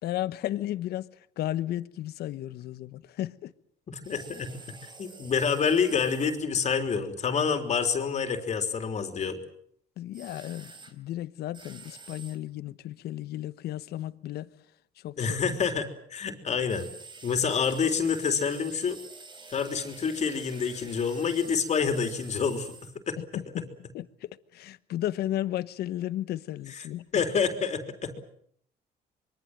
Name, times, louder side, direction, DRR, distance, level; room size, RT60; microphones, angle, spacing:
voice 1, 0.0-1.1 1.4-3.5 10.0-14.5 15.0-15.5 23.2-27.1, left 13 dB, 70° left, 1.1 m, -34 dB
voice 2, 3.9-9.4 15.2-16.9 17.2-19.0 19.5-23.2 26.7-26.8 27.1-28.2, left 6 dB, 45° left, 3.6 m, -28 dB
sound 1, 4.0-6.4 10.1-10.9 11.5-12.4 16.7-23.0, right 3 dB, 25° right, 4.0 m, -48 dB
25.5 x 23.0 x 7.9 m
cardioid pair, 110°, 17 cm